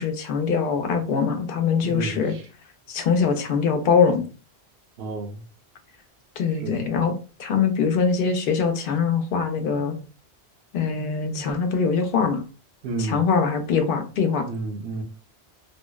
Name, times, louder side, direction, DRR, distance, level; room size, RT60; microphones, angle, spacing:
voice 1, 0.0-2.4 2.9-4.2 6.4-10.0 10.7-12.4 13.0-14.4, left 5 dB, 60° left, 6 dB, 0.7 m, -23 dB
voice 2, 1.8-2.4 5.0-5.4 6.5-6.8 12.8-13.2 14.5-15.0, right 3 dB, 75° right, 3 dB, 0.9 m, -31 dB
2.7 x 2.0 x 2.2 m, 0.35 s
omnidirectional pair, 1.1 m